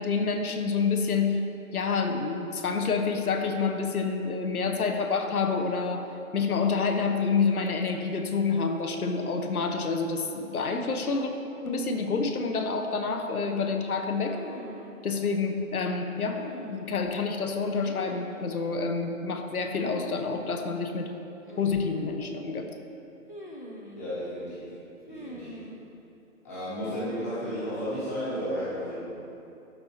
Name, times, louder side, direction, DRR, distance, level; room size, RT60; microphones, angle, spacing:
voice 1, 0.0-1.4 1.7-6.0 6.3-11.3 11.6-14.4 15.0-21.1 21.6-22.7, left 4 dB, 90° left, 4 dB, 1.0 m, -28 dB
sound 1, 14.2-14.9 16.2-17.1 17.7-18.4 19.7-20.2 20.5-20.6 21.5-22.2 23.3-24.0 25.1-25.8 26.8-27.6, left 1 dB, 40° left, 0.4 m, -42 dB
voice 2, 24.0-24.7 25.1-25.5 26.4-29.1, equal, 10° left, -14 dB, 1.3 m, -33 dB
12.0 x 4.5 x 2.8 m, 2.7 s
hypercardioid pair, 175°, 43 cm